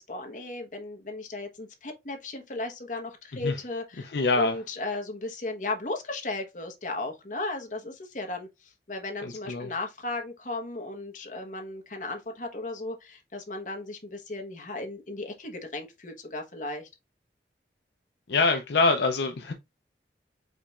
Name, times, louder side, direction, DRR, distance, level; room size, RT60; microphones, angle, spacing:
voice 1, 0.0-16.9, left 2 dB, 45° left, 1.1 m, -36 dB
voice 2, 4.0-4.6 9.2-9.7 18.3-19.5, left 3 dB, 70° left, 0.5 m, -25 dB
5.0 x 4.2 x 2.4 m
head